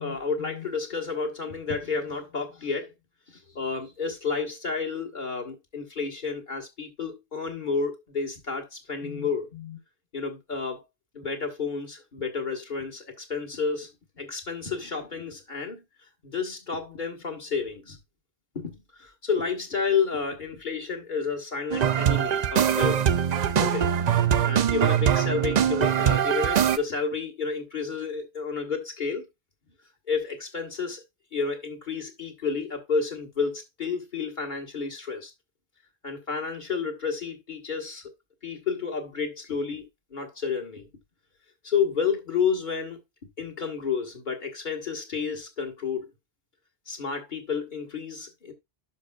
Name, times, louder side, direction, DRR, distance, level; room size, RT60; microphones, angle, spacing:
voice 1, 0.0-2.9 3.5-9.8 10.1-10.8 11.1-13.9 14.2-15.8 16.2-18.0 18.5-23.2 23.5-23.9 24.4-29.3 30.1-31.0 31.3-35.3 36.0-38.1 38.4-40.9 41.6-43.0 43.4-46.1 46.9-48.5, left 5 dB, 50° left, 1.7 m, -30 dB
sound 1, 21.7-26.8, right 9 dB, 50° right, 0.6 m, -22 dB
11.5 x 5.4 x 2.3 m
omnidirectional pair, 1.1 m